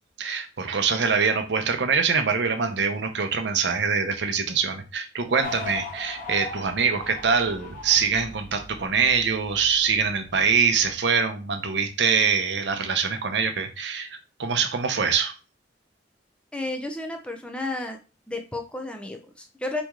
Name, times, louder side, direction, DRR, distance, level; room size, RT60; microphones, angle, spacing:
voice 1, 0.2-15.3, right 6 dB, 70° right, 6 dB, 0.7 m, -24 dB
sound 1, 5.4-10.9, left 2 dB, 50° left, 1.0 m, -39 dB
voice 2, 16.5-18.0 18.3-19.8, left 2 dB, 5° left, 3 dB, 0.5 m, -32 dB
4.2 x 3.0 x 3.6 m, 0.32 s
head